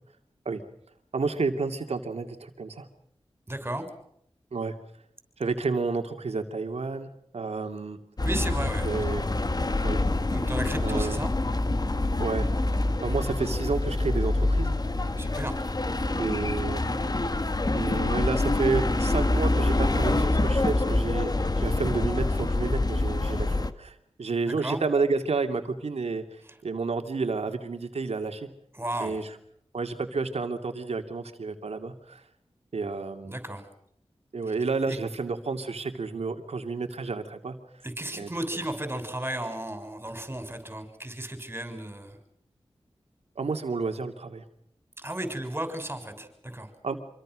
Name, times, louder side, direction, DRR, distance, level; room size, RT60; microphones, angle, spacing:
voice 1, 1.1-2.9 4.5-4.7 5.4-8.0 8.8-9.3 9.8-10.0 10.8-11.2 12.2-12.5 13.0-14.7 16.0-16.8 17.7-26.2 26.6-28.5 29.0-29.3 29.7-32.2 32.7-33.4 34.3-37.6 38.2-38.3 43.4-44.4 46.8-47.0, right 4 dB, 90° right, 6 dB, 2.6 m, -30 dB
voice 2, 3.5-3.9 8.2-9.4 10.3-11.3 15.2-15.6 24.5-24.8 26.4-26.6 28.7-29.2 33.2-33.7 34.8-35.0 37.8-42.2 45.0-46.7, right 1 dB, 20° right, 8 dB, 6.5 m, -34 dB
sound 1, 8.2-23.7, left 2 dB, 40° left, 1.6 m, -26 dB
26.5 x 25.0 x 6.4 m, 0.71 s
wide cardioid pair, 60°, 10 cm